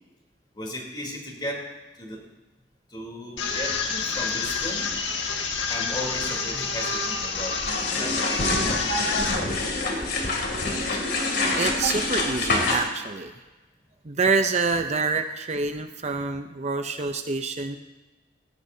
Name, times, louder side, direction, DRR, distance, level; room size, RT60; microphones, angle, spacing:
voice 1, 0.5-1.6 2.0-2.2 2.9-4.9 5.7-7.6 7.9-10.4, left 1 dB, 25° left, 0 dB, 3.3 m, -36 dB
sound 1, 3.4-9.4, left 4 dB, 85° left, 1.7 m, -28 dB
sound 2, 7.7-12.8, left 2 dB, 65° left, 2.7 m, -26 dB
voice 2, 11.6-13.3 14.0-17.8, right 4 dB, 40° right, 7 dB, 0.6 m, -26 dB
18.0 x 16.5 x 2.8 m, 1.1 s
head